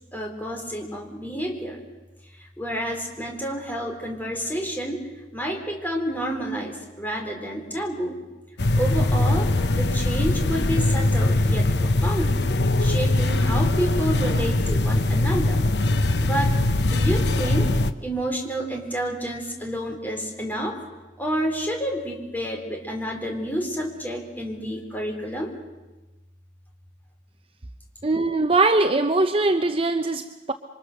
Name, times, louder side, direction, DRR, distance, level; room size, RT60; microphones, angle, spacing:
voice 1, 0.1-1.8 2.4-5.0 5.3-8.2 8.7-9.5 9.7-12.4 12.8-15.6 16.2-16.5 16.8-17.7 18.0-20.8 21.2-25.5, equal, 10° left, 1 dB, 3.9 m, -29 dB
sound 1, 8.6-17.9, left 2 dB, 75° left, 1.0 m, -21 dB
voice 2, 28.0-30.5, right 3 dB, 30° right, 8 dB, 0.7 m, -21 dB
27.5 x 24.5 x 6.7 m, 1.1 s
head